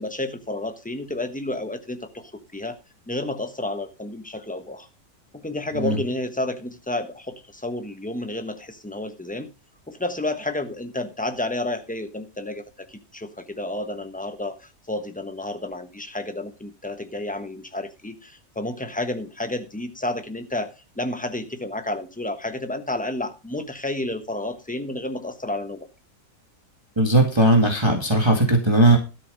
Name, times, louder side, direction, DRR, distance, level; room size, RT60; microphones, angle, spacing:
voice 1, 0.0-2.8 3.1-4.9 5.3-9.5 9.9-25.9, left 2 dB, 5° left, 8 dB, 1.0 m, -31 dB
voice 2, 27.0-29.0, right 1 dB, 15° right, 2 dB, 2.2 m, -18 dB
13.0 x 6.8 x 5.3 m, 0.30 s
omnidirectional pair, 1.7 m